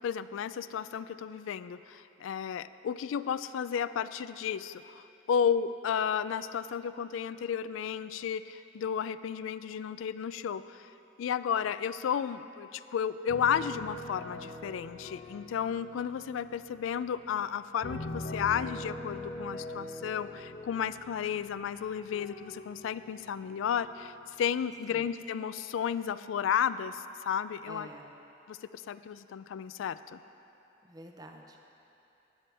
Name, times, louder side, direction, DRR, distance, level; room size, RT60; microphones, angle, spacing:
voice 1, 0.0-10.9 11.2-27.9 28.5-30.2, left 8 dB, 85° left, 14 dB, 0.3 m, -33 dB
sound 1, 13.3-17.4 17.8-23.3 23.8-24.2, left 1 dB, 60° left, 1.0 m, -43 dB
voice 2, 27.7-28.1 30.8-31.6, right 1 dB, 20° right, 3 dB, 0.6 m, -48 dB
13.5 x 9.9 x 3.4 m, 2.9 s
head